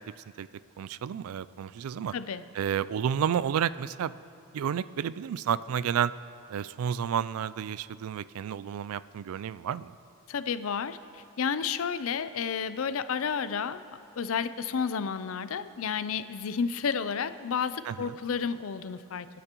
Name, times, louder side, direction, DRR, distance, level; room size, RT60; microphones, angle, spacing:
voice 1, 0.8-2.1 2.5-4.1 4.5-6.1 6.5-9.9 17.9-18.2, right 8 dB, 80° right, 17 dB, 0.3 m, -31 dB
voice 2, 2.1-2.4 10.3-13.8 14.2-19.3, left 6 dB, 75° left, 13 dB, 0.5 m, -31 dB
25.5 x 10.0 x 3.0 m, 2.8 s
head